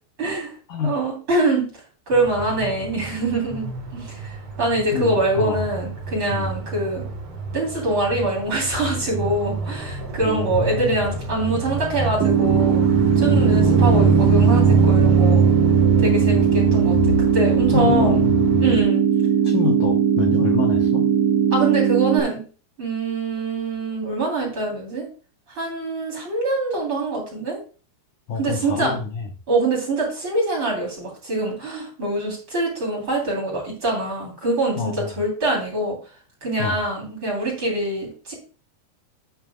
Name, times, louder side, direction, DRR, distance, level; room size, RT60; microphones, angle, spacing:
voice 1, 0.2-0.5 0.8-1.7 2.1-7.0 7.5-12.9 13.2-15.4 16.0-18.3 18.6-19.0 21.5-22.4 22.8-25.1 25.5-27.6 28.4-29.0 29.5-36.0 36.4-38.3, right 2 dB, 30° right, -2 dB, 3.9 m, -24 dB
sound 1, 2.1-18.8, right 3 dB, 55° right, 1.6 m, -23 dB
voice 2, 4.9-5.7 6.3-6.5 10.2-11.1 13.3-13.5 17.7-18.7 19.4-21.1 28.3-29.3 34.8-35.1 36.6-36.8, left 6 dB, 75° left, 2 dB, 1.8 m, -26 dB
sound 2, 12.2-22.2, right 8 dB, 75° right, 1.7 m, -19 dB
9.1 x 9.1 x 2.4 m, 0.37 s
omnidirectional pair, 5.0 m